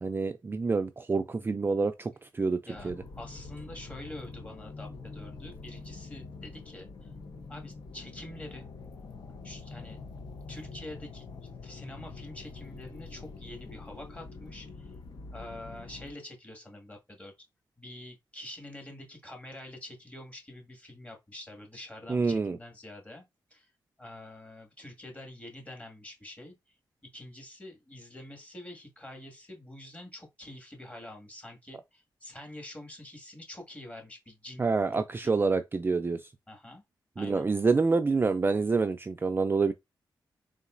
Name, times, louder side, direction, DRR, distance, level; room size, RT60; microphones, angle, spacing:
voice 1, 0.0-2.6 2.8-3.0 22.1-22.6 34.6-36.2 37.2-39.7, right 4 dB, 25° right, 0.4 m, -27 dB
sound 1, 2.7-16.1, left 3 dB, 60° left, 0.7 m, -45 dB
voice 2, 2.7-7.1 7.5-8.7 9.4-10.0 10.5-14.9 15.3-17.3 17.8-23.2 23.5-23.7 24.0-26.5 27.1-35.3 36.5-36.8 37.2-37.5, left 1 dB, 15° left, 1.8 m, -46 dB
3.9 x 3.7 x 2.5 m
cardioid pair, 85°, 8 cm